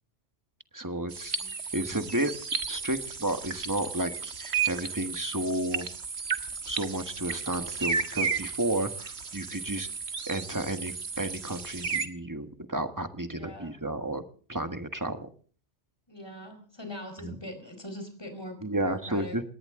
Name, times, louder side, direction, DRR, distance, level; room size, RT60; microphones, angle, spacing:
voice 1, 0.7-1.4 1.7-2.3 2.7-5.9 6.7-9.9 10.3-14.2 14.5-15.3 17.2-17.3 18.6-19.4, right 1 dB, 15° right, 8 dB, 1.6 m, -32 dB
sound 1, 1.1-12.1, right 5 dB, 60° right, 1.8 m, -34 dB
voice 2, 13.4-13.7 16.1-19.4, left 1 dB, 20° left, 6 dB, 4.7 m, -42 dB
20.0 x 18.5 x 3.8 m, 0.43 s
omnidirectional pair, 1.2 m